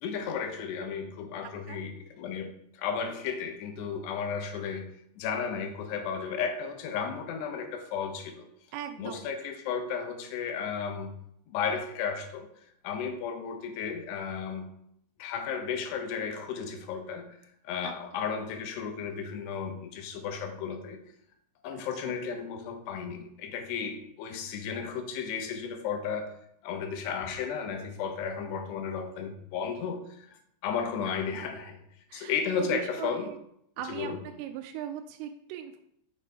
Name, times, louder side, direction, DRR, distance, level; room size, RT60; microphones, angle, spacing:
voice 1, 0.0-4.9 5.2-8.5 9.0-11.2 11.5-12.5 12.8-14.7 15.2-17.4 17.6-21.0 21.6-26.3 26.6-31.8 32.1-33.3 33.9-34.2, left 6 dB, 75° left, 5 dB, 3.0 m, -34 dB
voice 2, 1.4-1.8 8.7-9.3 17.8-17.9 22.0-22.2 31.3-31.5 32.1-33.4 33.8-34.1 34.4-35.8, right 10 dB, 90° right, 4 dB, 2.9 m, -39 dB
7.4 x 6.7 x 4.8 m, 0.74 s
omnidirectional pair, 5.1 m